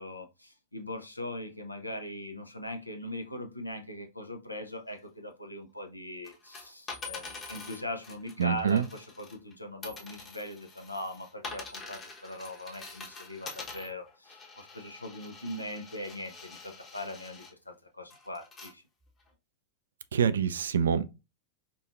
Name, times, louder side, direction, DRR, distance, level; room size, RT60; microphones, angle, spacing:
voice 1, 0.0-18.8, left 1 dB, 85° left, 0.6 m, -40 dB
sound 1, 6.2-9.5 9.8-17.5 18.1-18.7 19.3-19.4, left 4 dB, 25° left, 0.9 m, -45 dB
voice 2, 8.4-8.8 20.1-21.1, right 7 dB, 65° right, 0.3 m, -25 dB
4.8 x 2.3 x 2.4 m
figure-of-eight pair, 90°, 0 cm